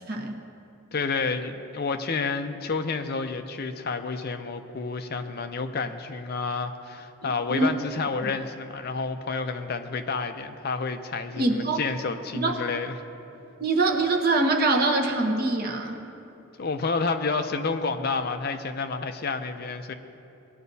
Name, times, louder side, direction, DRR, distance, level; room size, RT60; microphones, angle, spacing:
voice 1, 0.1-0.4 7.2-7.7 8.2-8.3 11.4-11.8 12.3-12.6 13.6-16.0, right 2 dB, 45° right, 3 dB, 0.9 m, -24 dB
voice 2, 0.9-12.9 16.6-19.9, left 4 dB, 45° left, 7 dB, 0.5 m, -30 dB
19.0 x 10.0 x 2.7 m, 2.8 s
head